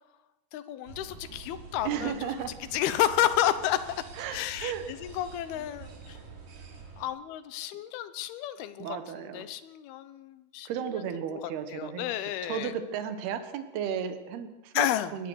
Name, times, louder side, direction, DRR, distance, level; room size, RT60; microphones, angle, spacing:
voice 1, 0.5-2.1 2.7-3.9 4.3-6.2 7.0-9.0 9.3-10.7 11.7-12.7 14.7-15.1, left 12 dB, 80° left, 13 dB, 2.9 m, -30 dB
sound 1, 0.9-7.1, right 4 dB, 60° right, 4.7 m, -47 dB
voice 2, 1.8-2.5 4.2-4.9 8.8-9.5 10.7-14.9 15.1-15.3, right 8 dB, 85° right, 9 dB, 3.4 m, -34 dB
22.5 x 18.5 x 6.4 m, 1.1 s
omnidirectional pair, 4.5 m